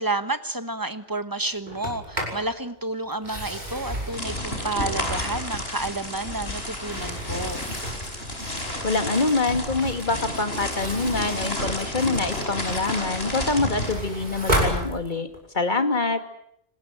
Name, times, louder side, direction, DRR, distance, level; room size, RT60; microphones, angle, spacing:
voice 1, 0.0-7.6, right 2 dB, 20° right, 11 dB, 1.3 m, -30 dB
Sliding door, 1.7-2.5 3.1-5.5 6.0-8.2 10.6-12.5 13.0-15.5, equal, 45° right, 6.6 m, -32 dB
sound 1, 4.1-13.9, left 1 dB, 70° left, 5.6 m, -31 dB
sound 2, 7.3-13.0, right 1 dB, 85° right, 3.5 m, -45 dB
voice 2, 8.8-15.3 15.5-16.2, left 3 dB, 45° left, 8 dB, 2.3 m, -25 dB
26.0 x 20.0 x 9.0 m, 0.72 s
omnidirectional pair, 1.1 m